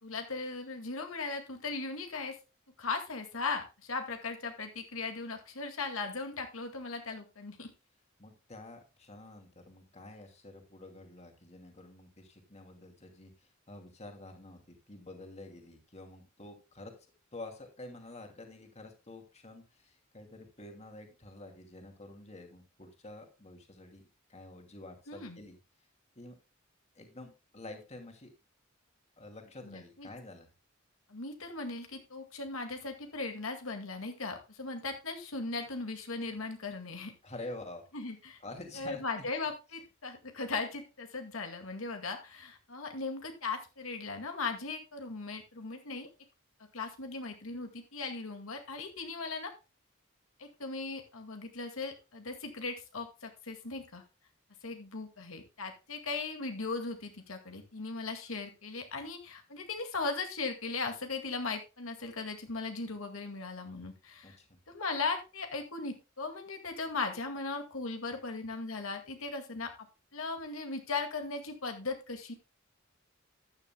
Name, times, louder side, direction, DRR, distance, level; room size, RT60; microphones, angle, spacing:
voice 1, 0.0-2.4 2.8-7.7 25.1-25.4 29.6-30.1 31.1-37.1 37.9-38.4 38.7-46.1 46.7-49.5 50.4-54.0 54.6-64.4 64.7-69.7 70.1-72.3, left 3 dB, 85° left, 5 dB, 2.0 m, -38 dB
voice 2, 8.2-16.9 17.3-24.0 24.3-25.6 26.2-26.4 27.0-28.3 29.2-30.5 37.2-37.8 38.4-39.0 64.2-64.6, left 2 dB, 35° left, 4 dB, 2.5 m, -48 dB
14.0 x 9.8 x 2.2 m, 0.28 s
head